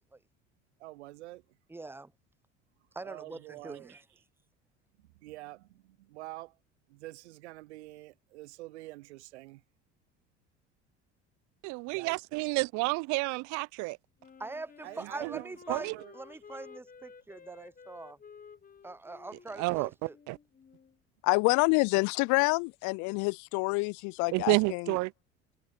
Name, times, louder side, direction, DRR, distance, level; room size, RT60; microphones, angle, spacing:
voice 1, 0.8-1.6 3.0-4.2 5.0-6.6 6.9-9.6 11.9-12.2 14.8-16.2, right 18 dB, 75° right, 1.0 m, -47 dB
voice 2, 1.7-2.1 2.9-4.0 14.4-18.2 18.8-20.1, right 2 dB, 5° right, 0.8 m, -43 dB
voice 3, 11.6-14.0 15.0-15.4 15.7-16.0 19.6-20.4 24.3-25.1, right 26 dB, 55° right, 0.7 m, -30 dB
Wind instrument woodwind instrument, 14.2-21.0, left 6 dB, 25° left, 1.5 m, -54 dB
voice 4, 21.2-24.9, left 29 dB, 55° left, 0.6 m, -27 dB
hypercardioid pair, 65°, 34 cm